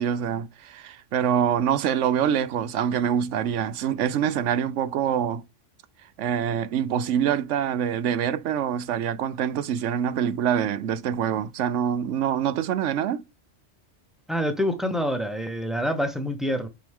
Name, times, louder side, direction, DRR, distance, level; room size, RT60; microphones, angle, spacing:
voice 1, 0.0-5.4 6.2-13.2, right 9 dB, 80° right, 1.0 m, -25 dB
voice 2, 14.3-16.7, equal, ahead, 1.0 m, -26 dB
6.0 x 4.7 x 3.5 m
omnidirectional pair, 1.2 m